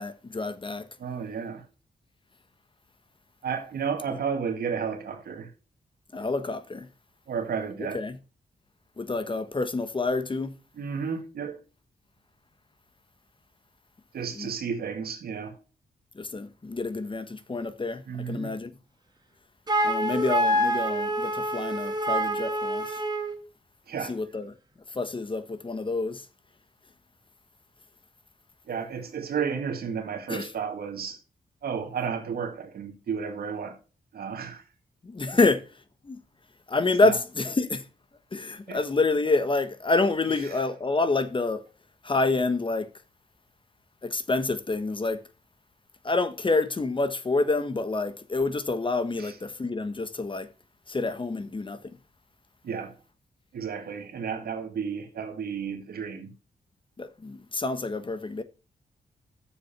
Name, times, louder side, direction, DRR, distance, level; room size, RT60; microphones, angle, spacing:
voice 1, 0.0-0.9 4.1-4.2 6.1-6.9 7.9-8.2 9.0-10.5 14.3-14.5 16.1-18.7 19.8-23.0 24.0-24.5 24.9-26.2 30.3-30.5 35.0-35.6 36.0-36.2 36.7-37.8 38.3-41.6 42.0-42.9 44.0-45.2 46.0-50.5 50.9-52.0 57.0-58.4, left 3 dB, 35° left, 1.2 m, -27 dB
voice 2, 1.0-1.6 3.4-5.5 7.3-8.0 10.8-11.6 14.1-15.5 18.1-18.5 23.9-24.1 28.7-31.2 31.6-33.8 34.1-34.6 38.7-38.8 49.2-49.3 52.6-52.9 53.5-56.3, right 6 dB, 80° right, 1.9 m, -32 dB
Wind instrument woodwind instrument, 19.7-23.4, right 1 dB, 25° right, 1.8 m, -26 dB
7.2 x 6.7 x 5.7 m
cardioid pair, 65°, 16 cm